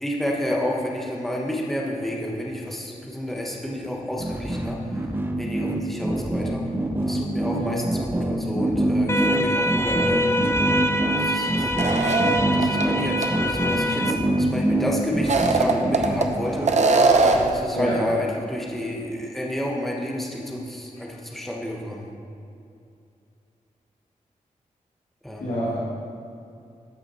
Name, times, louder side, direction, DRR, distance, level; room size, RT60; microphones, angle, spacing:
voice 1, 0.0-4.8 5.4-6.6 7.0-10.4 11.2-11.7 12.5-22.1 25.2-25.6, left 1 dB, ahead, -2 dB, 1.3 m, -30 dB
sound 1, 4.2-16.7, right 1 dB, 15° right, 0.8 m, -25 dB
sound 2, 9.1-14.1, equal, 20° left, 0.5 m, -25 dB
sound 3, 11.8-12.8 13.2-13.3 15.1-16.3 16.7-17.6, right 3 dB, 55° right, 0.8 m, -20 dB
voice 2, 25.4-25.8, equal, 75° left, -10 dB, 2.3 m, -26 dB
13.5 x 4.9 x 4.2 m, 2.5 s
cardioid pair, 60°, 14 cm